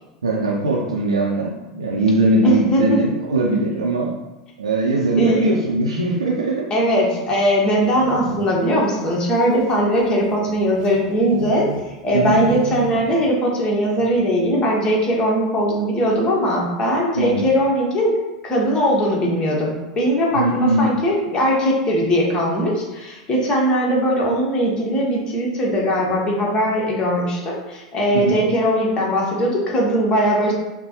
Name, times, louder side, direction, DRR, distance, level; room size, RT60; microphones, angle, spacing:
voice 1, 0.2-4.1 4.6-6.7 12.1-12.4 17.1-17.5 20.3-20.9 28.1-28.4, right 2 dB, 80° right, -3 dB, 0.6 m, -20 dB
voice 2, 2.4-3.0 5.2-5.5 6.7-11.7 12.0-18.2 18.4-30.5, equal, 30° left, -3 dB, 1.3 m, -20 dB
sound 1, 7.7-8.7 9.4-11.9 12.2-13.3 13.6-13.7 13.9-14.3, right 5 dB, 50° right, 0.9 m, -32 dB
5.7 x 2.2 x 3.0 m, 1.0 s
figure-of-eight pair, 85°, 3 cm